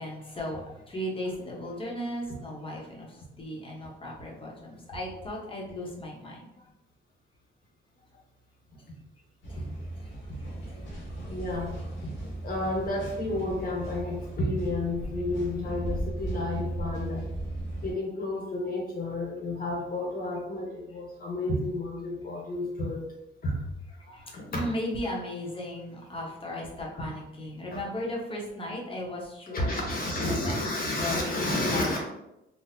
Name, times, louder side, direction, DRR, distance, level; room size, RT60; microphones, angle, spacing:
voice 1, 0.0-6.7 9.5-9.6 10.0-10.1 10.6-10.7 23.5-23.6 24.0-29.8 30.3-30.6 30.9-31.4 31.7-32.0, left 1 dB, 25° left, -2 dB, 1.1 m, -36 dB
sound 1, 9.4-17.9, right 1 dB, 75° left, 1.4 m, -36 dB
voice 2, 11.3-11.7 12.0-12.1 12.4-17.2 17.8-23.0 23.4-23.5 24.3-24.6 26.9-27.1 27.7-27.8 29.5-32.0, left 2 dB, 45° left, -1 dB, 1.2 m, -31 dB
4.2 x 2.3 x 2.7 m, 0.89 s
cardioid pair, 90°, 20 cm